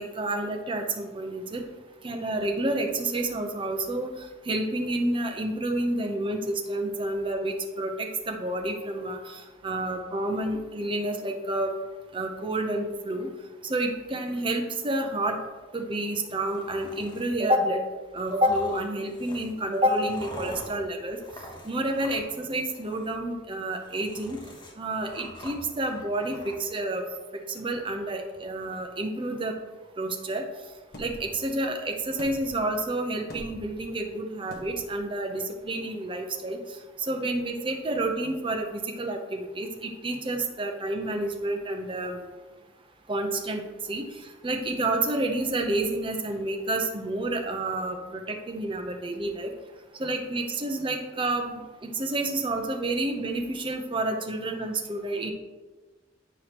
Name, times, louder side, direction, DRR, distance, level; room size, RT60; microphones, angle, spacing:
voice 1, 0.0-1.6 2.0-4.1 4.5-11.7 12.1-13.3 13.7-15.4 15.7-17.8 18.1-21.2 21.6-24.4 24.8-27.0 27.5-29.5 30.0-30.4 31.0-36.6 37.1-42.2 43.1-43.6 43.9-44.0 44.4-49.5 50.0-55.3, right 1 dB, 30° right, 3 dB, 0.7 m, -29 dB
sound 1, 16.4-17.3 18.2-22.4 22.7-23.1 23.6-26.6, left 1 dB, 25° left, 0.9 m, -45 dB
sound 2, 30.9-31.3 32.2-32.7 33.3-33.8 34.5-34.9, equal, 55° left, 1.3 m, -43 dB
8.8 x 4.8 x 2.9 m, 1.3 s
head